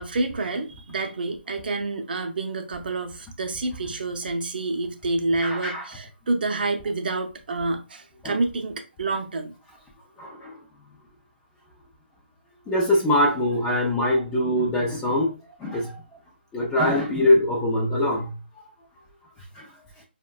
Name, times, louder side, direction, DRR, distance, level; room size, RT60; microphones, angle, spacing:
voice 1, 0.0-9.5, right 2 dB, 55° right, 0.5 m, -28 dB
voice 2, 5.4-5.9 8.2-8.4 10.2-10.5 12.7-15.3 15.6-16.0 16.5-18.4 19.6-19.7, left 1 dB, 10° left, 0.4 m, -23 dB
4.6 x 2.1 x 2.2 m
figure-of-eight pair, 155°, 6 cm